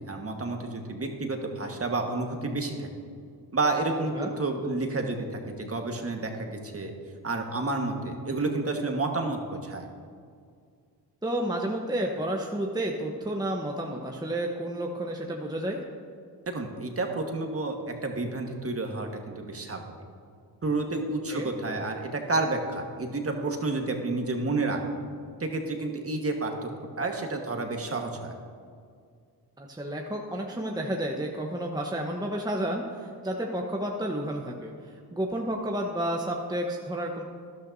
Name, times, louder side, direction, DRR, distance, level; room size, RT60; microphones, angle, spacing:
voice 1, 0.1-2.9 3.5-6.9 7.2-9.9 16.5-19.8 20.6-25.0 25.4-26.7 27.0-28.3, right 2 dB, 30° right, 3 dB, 1.5 m, -30 dB
voice 2, 11.2-15.8 21.3-21.5 29.6-37.2, right 1 dB, 10° right, 1 dB, 1.0 m, -31 dB
12.5 x 11.5 x 2.7 m, 2.2 s
supercardioid pair, 55°, 46 cm